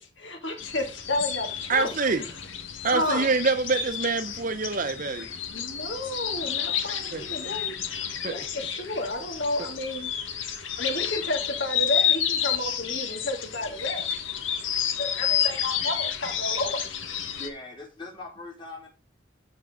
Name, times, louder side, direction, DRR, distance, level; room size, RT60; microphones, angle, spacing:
voice 1, 0.0-2.3 2.9-3.3 5.5-7.7 8.3-10.1 10.4-14.1 15.0-16.9, left 1 dB, 70° left, 2.7 m, -31 dB
sound 1, 0.6-17.5, left 9 dB, 90° left, 1.6 m, -30 dB
voice 2, 1.7-2.2 2.8-5.3 7.1-7.2 8.2-8.4, right 4 dB, 45° right, 0.8 m, -25 dB
voice 3, 17.3-18.9, left 2 dB, 25° left, 3.1 m, -41 dB
13.5 x 4.6 x 3.8 m
head